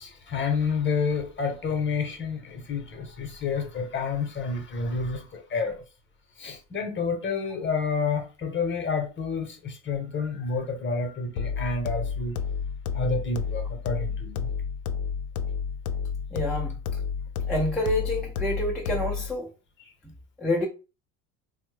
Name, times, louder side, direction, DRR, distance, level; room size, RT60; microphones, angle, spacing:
voice 1, 0.0-5.8 6.4-12.4 12.9-14.5, left 4 dB, 25° left, 0.8 m, -29 dB
sound 1, 11.4-19.4, left 6 dB, 70° left, 0.5 m, -31 dB
voice 2, 16.3-16.7 17.5-19.5 20.4-20.7, left 1 dB, ahead, 0.4 m, -27 dB
3.0 x 2.2 x 3.2 m
hypercardioid pair, 90°, 46 cm